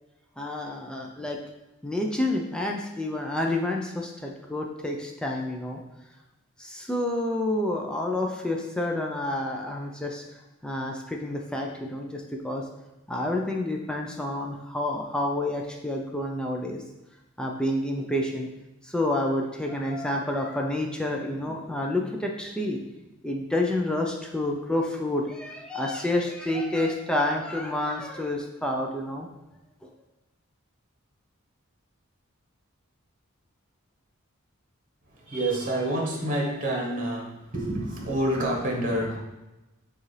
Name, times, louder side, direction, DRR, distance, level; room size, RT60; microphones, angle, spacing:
voice 1, 0.4-1.4 1.8-5.8 6.6-10.2 10.6-12.6 13.1-16.8 17.4-18.5 18.8-22.8 23.2-29.3 29.8-29.9, left 1 dB, 5° left, 0 dB, 0.4 m, -29 dB
voice 2, 35.1-39.2, right 1 dB, 40° right, -1 dB, 1.1 m, -28 dB
6.6 x 2.5 x 3.2 m, 1.0 s
head